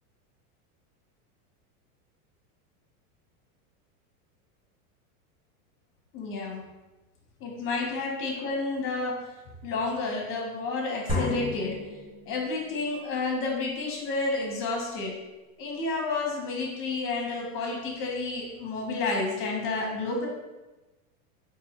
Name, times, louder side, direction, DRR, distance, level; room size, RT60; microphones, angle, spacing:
voice 1, 6.1-6.7 7.4-9.3 9.6-11.8 12.3-15.2 15.6-20.3, left 3 dB, 30° left, 0 dB, 0.7 m, -30 dB
sound 1, 11.1-12.8, left 2 dB, 10° right, 0.6 m, -32 dB
3.9 x 2.6 x 2.9 m, 1.1 s
supercardioid pair, 150°, 45 cm